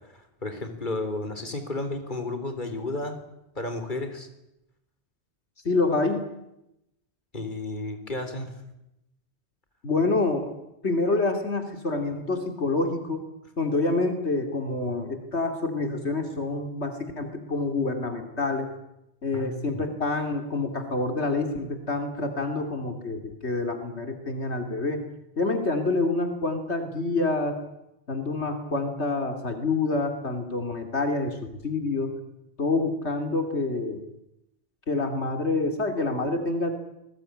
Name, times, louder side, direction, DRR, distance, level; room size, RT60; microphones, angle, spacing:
voice 1, 0.1-3.2 3.6-4.3 7.3-8.5 19.3-19.8, left 2 dB, 45° left, 7 dB, 4.2 m, -32 dB
voice 2, 5.6-6.3 9.8-10.5 10.8-13.2 13.6-18.7 19.2-25.0 25.4-27.6 28.1-32.2 32.6-34.0 34.9-36.7, left 3 dB, 80° left, 5 dB, 3.2 m, -27 dB
28.5 x 21.0 x 9.9 m, 0.86 s
omnidirectional pair, 1.1 m